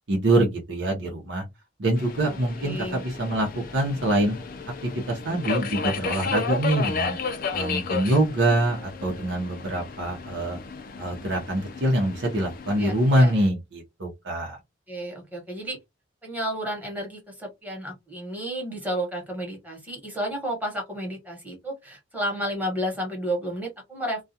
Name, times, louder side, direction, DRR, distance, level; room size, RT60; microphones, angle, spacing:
voice 1, 0.1-1.4 1.8-3.5 3.7-4.4 4.8-7.2 7.5-10.6 11.0-14.6, right 1 dB, 75° right, 0.8 m, -24 dB
Subway metro underground, 2.0-13.5, left 5 dB, 50° left, 0.4 m, -33 dB
voice 2, 2.2-3.0 12.8-13.3 14.9-15.8 16.2-24.2, right 1 dB, 10° right, 1.1 m, -32 dB
2.3 x 2.3 x 2.7 m
head